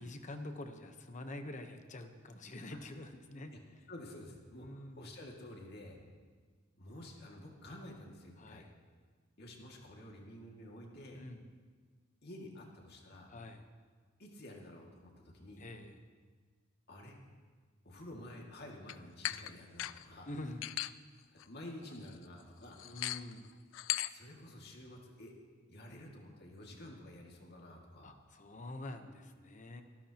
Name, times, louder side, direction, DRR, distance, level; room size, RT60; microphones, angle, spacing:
voice 1, 0.0-3.5 4.6-5.0 8.4-8.7 11.1-11.4 13.3-13.6 15.6-16.0 20.3-20.6 22.8-23.5 28.0-29.8, left 1 dB, 40° left, 7 dB, 1.0 m, -46 dB
voice 2, 3.9-6.0 6.8-8.6 9.4-11.2 12.2-13.4 14.2-15.7 16.9-17.2 17.8-20.3 21.3-22.9 24.1-25.3 25.7-28.1, left 1 dB, 55° left, 0 dB, 2.2 m, -50 dB
sound 1, 18.9-19.0 19.2-19.5 19.8-20.0 20.6-20.9 21.4-21.5 21.8-22.1 22.8-23.3 23.7-24.1, left 14 dB, 75° left, 0.4 m, -37 dB
26.0 x 13.5 x 3.0 m, 1.5 s
head